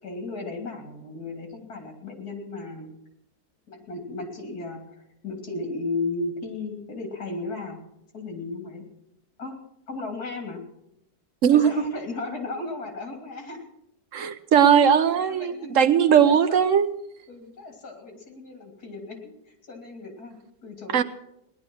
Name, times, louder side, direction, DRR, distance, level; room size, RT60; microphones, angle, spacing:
voice 1, 0.0-2.9 3.7-4.8 5.2-7.8 8.1-8.8 9.4-9.6 9.9-10.6 11.5-13.6 15.1-15.8 16.0-16.6 17.3-21.0, left 3 dB, 80° left, 3 dB, 3.3 m, -35 dB
voice 2, 11.4-11.7 14.1-16.9 20.9-21.0, right 8 dB, 60° right, 11 dB, 1.0 m, -19 dB
18.5 x 11.0 x 6.2 m, 0.82 s
omnidirectional pair, 1.6 m